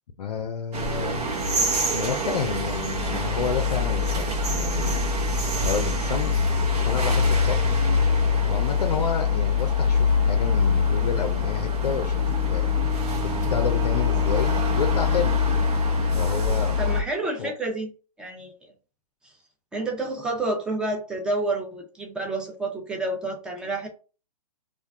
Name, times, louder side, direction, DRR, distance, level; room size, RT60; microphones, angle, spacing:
voice 1, 0.2-1.3 1.9-5.1 5.6-6.3 6.8-7.6 8.4-12.7 13.2-15.4 16.1-16.7 17.4-17.5, left 6 dB, 90° left, 0.5 m, -30 dB
sound 1, 0.7-17.0, left 4 dB, 75° right, 1.0 m, -23 dB
Wind instrument woodwind instrument, 12.1-16.4, right 9 dB, 45° right, 0.6 m, -37 dB
voice 2, 16.8-17.9 18.2-18.5 19.2-19.3 19.7-23.9, right 2 dB, 5° right, 0.5 m, -29 dB
2.5 x 2.1 x 3.5 m
hypercardioid pair, 135°, 20 cm